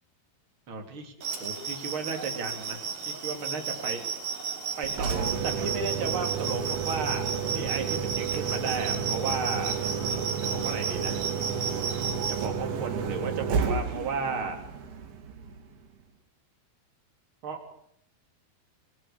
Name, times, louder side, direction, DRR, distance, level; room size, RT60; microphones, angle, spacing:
voice 1, 0.7-1.1 1.4-4.0 4.8-5.1 5.4-11.2 12.3-14.6 17.4-17.7, right 4 dB, 35° right, 3 dB, 4.2 m, -34 dB
sound 1, 1.2-12.5, right 6 dB, 55° right, 4.5 m, -34 dB
Engine, 4.8-15.8, right 6 dB, 85° right, 4.7 m, -31 dB
27.5 x 23.5 x 7.0 m, 0.70 s
omnidirectional pair, 4.5 m